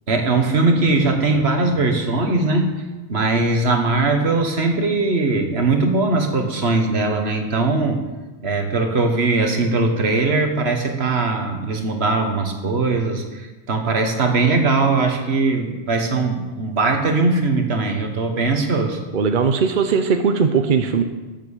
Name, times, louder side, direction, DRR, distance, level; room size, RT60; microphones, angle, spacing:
voice 1, 0.1-2.7 3.1-8.0 8.4-19.0, right 3 dB, 80° right, 4 dB, 1.7 m, -20 dB
voice 2, 19.1-21.0, right 5 dB, 55° right, 7 dB, 0.9 m, -19 dB
14.0 x 7.6 x 6.6 m, 1.2 s
omnidirectional pair, 1.1 m